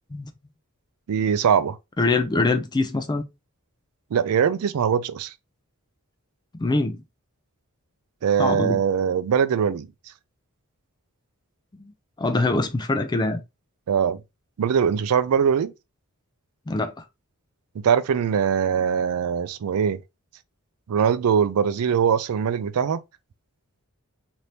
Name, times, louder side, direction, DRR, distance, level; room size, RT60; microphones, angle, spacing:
voice 1, 1.1-1.8 4.1-5.3 8.2-9.9 13.9-14.2 14.6-15.7 17.8-20.0 20.9-23.0, right 7 dB, 75° right, 0.4 m, -22 dB
voice 2, 2.0-3.2 6.5-7.0 8.4-8.8 12.2-13.4 16.7-17.0, left 3 dB, 20° left, 0.4 m, -23 dB
2.8 x 2.6 x 3.2 m
head